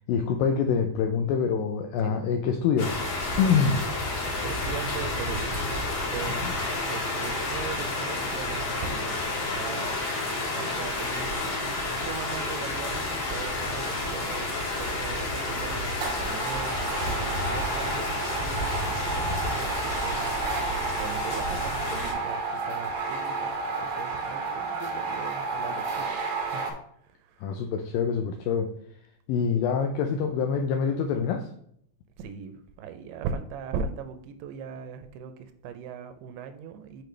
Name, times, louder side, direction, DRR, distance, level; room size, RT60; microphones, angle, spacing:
voice 1, 0.1-3.0 3.4-3.8 6.4-6.5 27.4-28.7 29.3-31.5, left 6 dB, 85° left, 5 dB, 2.0 m, -25 dB
voice 2, 2.0-2.3 4.3-5.7 6.1-10.0 10.5-11.3 11.6-20.3 21.0-26.8 27.0-27.5 32.2-37.0, right 7 dB, 80° right, 9 dB, 2.5 m, -39 dB
sound 1, 2.8-22.1, left 2 dB, 50° left, 2.2 m, -30 dB
Frying (food), 9.8-20.3, equal, 15° left, 0.9 m, -46 dB
sound 2, 15.1-15.4 15.9-26.7, right 4 dB, 65° right, 1.6 m, -31 dB
6.6 x 6.1 x 3.2 m, 0.68 s
omnidirectional pair, 4.7 m